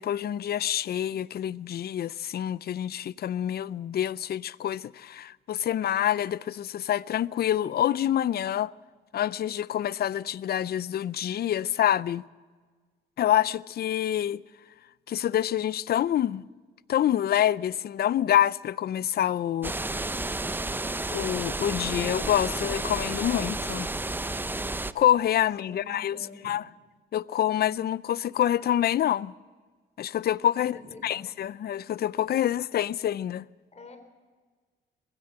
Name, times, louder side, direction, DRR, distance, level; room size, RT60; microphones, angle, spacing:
voice 1, 0.0-8.7 9.1-12.2 13.2-14.4 15.1-16.4 16.9-19.7 21.1-23.9 24.9-26.2 26.4-26.6 27.1-29.3 30.0-30.7 31.0-33.4, left 11 dB, 55° left, 0.5 m, -26 dB
sound 1, 19.6-24.9, right 2 dB, 10° right, 0.6 m, -31 dB
voice 2, 25.7-26.6 30.6-31.2 33.7-34.0, left 2 dB, 35° left, 3.8 m, -46 dB
20.5 x 16.0 x 7.8 m
cardioid pair, 90°, 20 cm